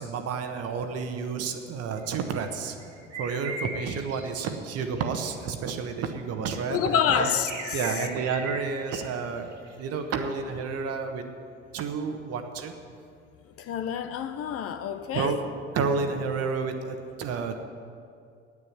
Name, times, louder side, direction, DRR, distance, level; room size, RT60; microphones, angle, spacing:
voice 1, 0.0-2.8 3.2-7.3 7.7-11.2 11.7-12.7 15.1-15.4 15.7-17.6, right 5 dB, 45° right, 6 dB, 1.3 m, -30 dB
sound 1, 2.0-5.4 7.1-9.0 9.4-10.6, right 2 dB, 80° right, 2.1 m, -39 dB
voice 2, 6.7-8.0 13.6-15.4, left 8 dB, 40° left, 9 dB, 0.8 m, -28 dB
9.5 x 9.3 x 9.4 m, 2.4 s
figure-of-eight pair, 65°, 35 cm